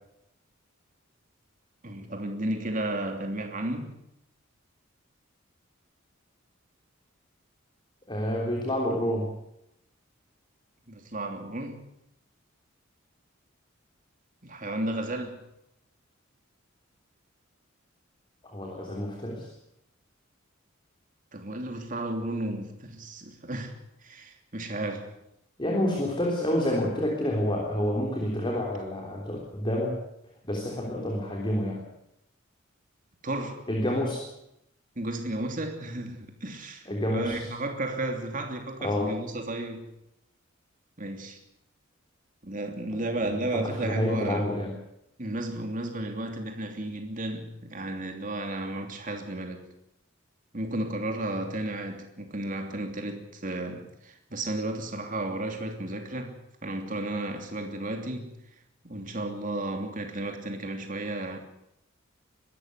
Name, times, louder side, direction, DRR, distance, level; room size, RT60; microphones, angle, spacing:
voice 1, 1.8-3.9 10.9-11.8 14.4-15.4 21.3-23.7 24.0-25.1 33.2-33.7 34.9-39.9 41.0-41.4 42.4-44.5 45.2-49.7 50.5-58.4 58.8-61.4, right 1 dB, 40° right, 2.9 m, -33 dB
voice 2, 8.1-9.3 18.4-19.5 25.6-30.0 30.4-31.8 33.7-34.3 36.9-37.5 38.8-39.1 42.9-43.0 43.3-44.7, left 1 dB, 25° left, 3.4 m, -28 dB
22.5 x 13.0 x 9.5 m
head